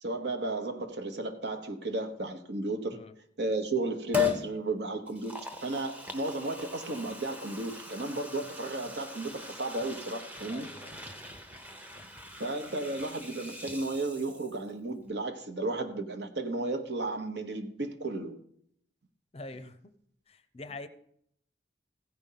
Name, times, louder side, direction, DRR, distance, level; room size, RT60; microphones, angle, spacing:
voice 1, 0.0-3.0 3.4-10.7 12.4-18.3, right 2 dB, 65° right, 5 dB, 1.1 m, -34 dB
Liquid, 4.1-4.5 5.1-14.7 15.0-15.1, left 6 dB, 10° right, 0.9 m, -38 dB
voice 2, 10.5-11.3 11.9-12.0 19.3-19.9 20.3-20.9, left 2 dB, 35° left, 11 dB, 0.6 m, -45 dB
15.5 x 5.3 x 5.6 m, 0.68 s
head